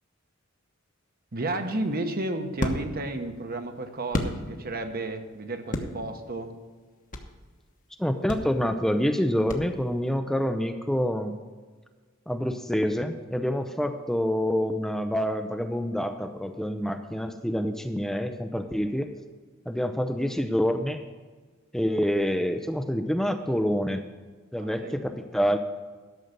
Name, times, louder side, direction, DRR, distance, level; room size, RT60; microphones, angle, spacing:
voice 1, 1.3-6.6 24.6-25.0, right 2 dB, 45° right, 6 dB, 1.0 m, -32 dB
sound 1, 1.5-4.9 5.3-7.4 7.8-7.9 8.3-10.1, left 1 dB, 40° left, 1.1 m, -34 dB
voice 2, 8.0-11.4 12.3-19.1 19.7-21.0 21.7-24.0 24.5-25.6, equal, ahead, 6 dB, 0.5 m, -27 dB
12.5 x 6.6 x 6.5 m, 1.4 s
head